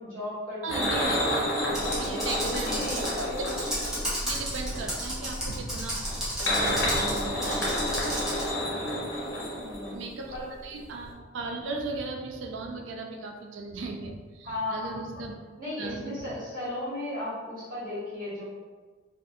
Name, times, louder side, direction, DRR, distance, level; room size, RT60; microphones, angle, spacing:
voice 1, 0.0-3.6 9.6-10.0 10.3-10.5 14.4-14.9 15.6-18.4, left 1 dB, 50° right, -11 dB, 1.3 m, -35 dB
voice 2, 0.6-1.3 1.9-3.1 4.2-8.2 8.8-8.9 9.9-10.3 10.6-15.4 15.8-16.4, right 3 dB, 80° right, 2 dB, 0.4 m, -37 dB
sound 1, 0.7-4.9 6.1-10.4 10.6-10.8 11.1-11.2, left 1 dB, 85° left, 0.8 m, -30 dB
Computer keyboard, 1.7-8.5, equal, 5° right, 0.7 m, -33 dB
2.4 x 2.4 x 2.7 m, 1.4 s
head